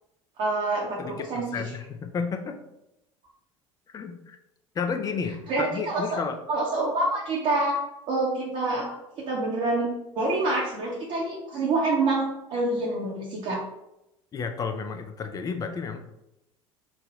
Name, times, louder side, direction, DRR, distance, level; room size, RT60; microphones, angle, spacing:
voice 1, 0.4-1.7 5.5-6.2 6.5-7.8 8.1-9.9 10.1-13.6, right 2 dB, 45° right, -5 dB, 0.8 m, -27 dB
voice 2, 1.0-2.6 3.9-4.4 4.7-6.4 14.3-16.0, left 5 dB, 20° left, 6 dB, 0.4 m, -32 dB
3.4 x 2.2 x 3.9 m, 0.89 s
figure-of-eight pair, 65°, 17 cm